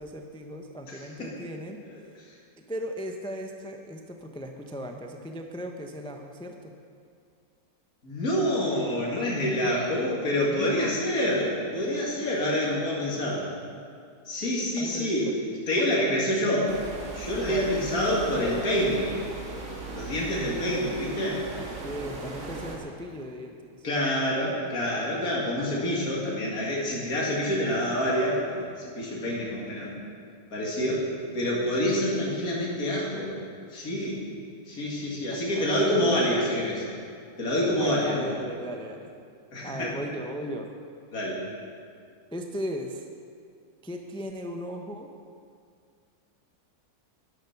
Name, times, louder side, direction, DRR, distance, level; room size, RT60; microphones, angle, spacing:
voice 1, 0.0-1.8 2.6-6.7 9.6-9.8 10.5-11.0 14.8-15.3 15.8-16.4 17.5-17.7 21.5-23.9 35.3-36.3 37.8-39.1 39.6-40.7 42.3-43.0 43.8-45.1, equal, 5° left, 3 dB, 0.5 m, -37 dB
voice 2, 0.9-1.3 8.0-13.4 14.3-15.3 15.7-16.7 17.1-19.1 19.9-21.5 23.8-29.9 30.5-31.1 31.3-33.3 33.7-34.2 34.7-36.9 37.4-38.2 39.5-39.9 41.1-41.4, left 1 dB, 70° left, -5 dB, 2.6 m, -27 dB
sound 1, 16.7-22.8, right 3 dB, 60° right, 2.0 m, -38 dB
12.5 x 10.5 x 5.8 m, 2.3 s
omnidirectional pair, 1.6 m